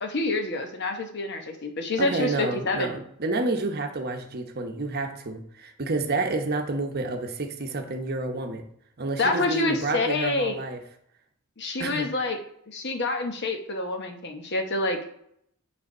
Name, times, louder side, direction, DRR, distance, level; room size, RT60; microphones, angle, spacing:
voice 1, 0.0-3.0 9.2-10.5 11.6-12.4 12.7-15.1, left 2 dB, 50° left, 5 dB, 1.0 m, -27 dB
voice 2, 2.0-8.6 9.0-10.8 11.8-12.1, right 2 dB, 45° right, 4 dB, 0.9 m, -29 dB
9.2 x 3.4 x 5.4 m, 0.72 s
head